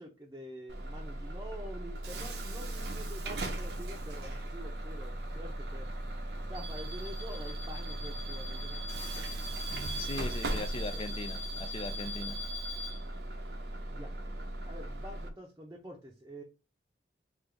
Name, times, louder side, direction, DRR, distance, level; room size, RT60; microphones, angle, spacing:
voice 1, 0.0-5.9 6.5-8.8 10.5-10.6 10.9-11.2 13.9-14.1 14.7-16.4, equal, 20° right, 0.6 m, -47 dB
Bus / Alarm, 0.7-15.3, right 1 dB, 70° right, 0.7 m, -37 dB
voice 2, 10.0-12.4, left 2 dB, 30° left, 0.4 m, -39 dB
3.7 x 2.6 x 3.2 m
head